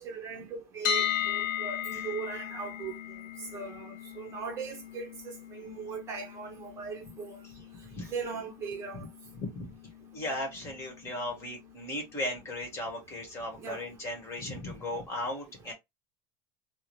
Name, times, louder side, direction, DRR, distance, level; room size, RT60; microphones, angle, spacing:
voice 1, 0.0-3.2 3.5-7.4 8.1-9.0 13.6-13.8, right 5 dB, 30° right, 0.8 m, -39 dB
sound 1, 0.8-12.8, left 10 dB, 85° left, 0.6 m, -38 dB
voice 2, 9.4-9.7 10.1-15.7, left 1 dB, 25° left, 1.5 m, -36 dB
3.6 x 2.0 x 3.0 m
cardioid pair, 160°, 10 cm